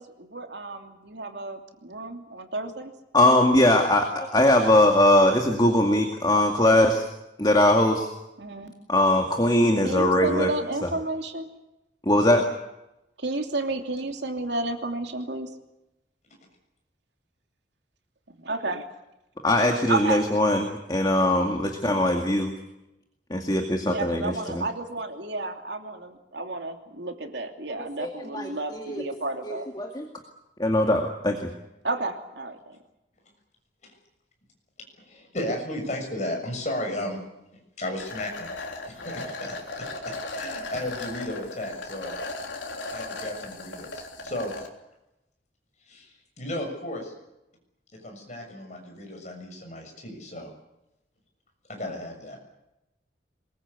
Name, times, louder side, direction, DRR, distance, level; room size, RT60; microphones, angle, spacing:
voice 1, 0.0-2.9 8.4-8.7 9.8-11.5 13.2-15.5 18.4-18.8 19.9-20.2 23.9-29.7 31.8-32.8, right 2 dB, 70° right, 4 dB, 2.9 m, -31 dB
voice 2, 3.1-7.0 7.4-8.1 8.9-10.5 10.8-10.9 12.0-12.5 19.4-22.5 23.3-24.6 28.0-29.1 29.4-30.0 30.6-31.5, left 1 dB, 20° left, 3 dB, 2.2 m, -21 dB
voice 3, 35.0-37.2 37.8-38.5 38.8-39.5 40.0-42.1 42.9-44.5 45.9-47.1 47.9-50.5 51.7-52.4, left 1 dB, 40° left, 2 dB, 6.8 m, -34 dB
sound 1, 38.0-44.7, left 2 dB, 85° left, 3.6 m, -36 dB
24.0 x 21.5 x 8.3 m, 0.93 s
head